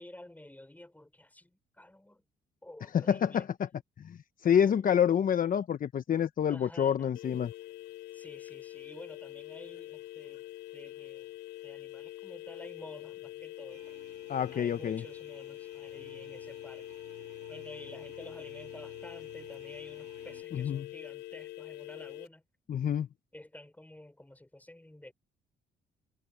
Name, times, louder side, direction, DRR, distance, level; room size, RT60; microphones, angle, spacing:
voice 1, 0.0-2.2 2.6-3.5 4.5-4.8 6.5-7.1 8.1-10.4 10.7-11.3 11.6-14.0 14.5-17.0 17.5-22.4 23.3-25.1, left 1 dB, 10° left, 5.6 m, -51 dB
voice 2, 2.9-3.5 4.0-7.5 14.3-15.0 20.5-20.9 22.7-23.1, left 8 dB, 50° left, 1.1 m, -28 dB
sound 1, 7.1-22.3, left 15 dB, 80° left, 4.2 m, -45 dB
sound 2, 13.7-20.4, right 18 dB, 85° right, 6.2 m, -57 dB
supercardioid pair, 65°, 18 cm